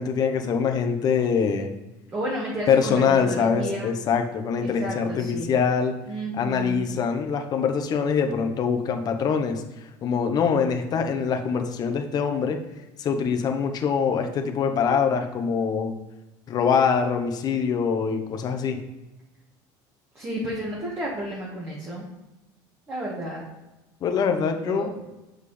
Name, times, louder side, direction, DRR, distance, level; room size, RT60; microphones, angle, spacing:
voice 1, 0.0-1.7 2.7-6.0 6.4-12.6 13.0-15.9 16.5-18.8 24.0-24.9, left 6 dB, 40° left, 5 dB, 0.9 m, -24 dB
voice 2, 2.1-3.9 4.6-5.5 6.1-6.9 20.1-22.1 22.9-23.4 24.6-25.0, right 1 dB, 25° right, -4 dB, 1.7 m, -32 dB
6.6 x 5.1 x 3.3 m, 1.0 s
cardioid pair, 125°, 10 cm